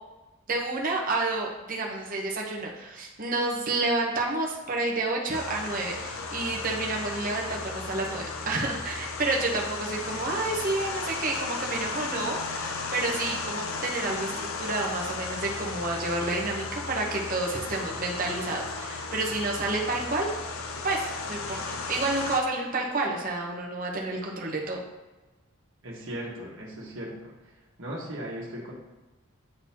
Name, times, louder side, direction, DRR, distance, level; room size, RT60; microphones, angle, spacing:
voice 1, 0.5-20.3 20.8-24.8, right 2 dB, 45° right, -1 dB, 1.0 m, -30 dB
sound 1, 5.3-22.4, left 4 dB, 85° left, 0.6 m, -35 dB
voice 2, 25.8-27.5 27.8-28.7, equal, 70° right, -3 dB, 1.5 m, -37 dB
8.9 x 4.0 x 2.9 m, 1.1 s
head